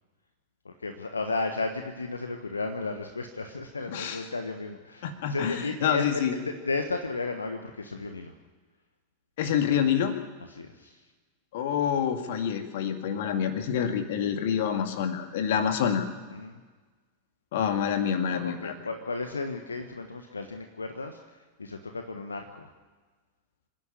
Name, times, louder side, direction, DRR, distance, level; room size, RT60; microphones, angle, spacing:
voice 1, 0.6-8.3 10.5-11.0 15.5-15.6 16.3-16.6 18.0-21.2 21.6-22.7, left 3 dB, 75° left, 5 dB, 1.3 m, -34 dB
voice 2, 3.9-4.2 5.0-6.3 9.4-10.1 11.5-16.1 17.5-18.7, left 8 dB, 55° left, 7 dB, 2.2 m, -27 dB
26.5 x 10.5 x 9.8 m, 1.4 s
figure-of-eight pair, 90°, 0 cm